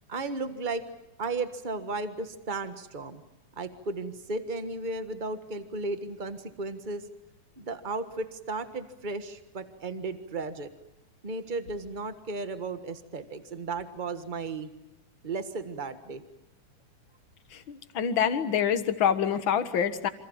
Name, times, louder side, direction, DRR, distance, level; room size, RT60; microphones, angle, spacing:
voice 1, 0.1-0.8 1.2-3.2 3.6-7.0 7.6-10.7 11.2-14.7 15.2-16.2, right 3 dB, 45° right, 9 dB, 0.6 m, -34 dB
voice 2, 17.5-20.1, left 8 dB, 50° left, 10 dB, 1.8 m, -26 dB
28.0 x 27.0 x 7.3 m, 0.87 s
omnidirectional pair, 3.6 m